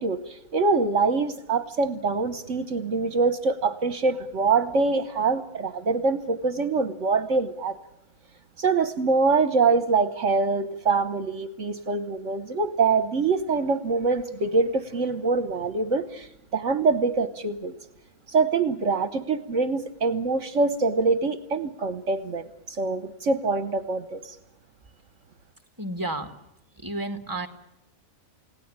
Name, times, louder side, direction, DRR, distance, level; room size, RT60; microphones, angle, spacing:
voice 1, 0.0-7.8 8.6-17.7 18.3-24.4, right 4 dB, 65° right, 12 dB, 1.4 m, -24 dB
voice 2, 25.8-26.3 26.8-27.5, right 2 dB, 15° right, 7 dB, 2.3 m, -31 dB
29.5 x 17.5 x 8.8 m, 0.90 s
omnidirectional pair, 1.4 m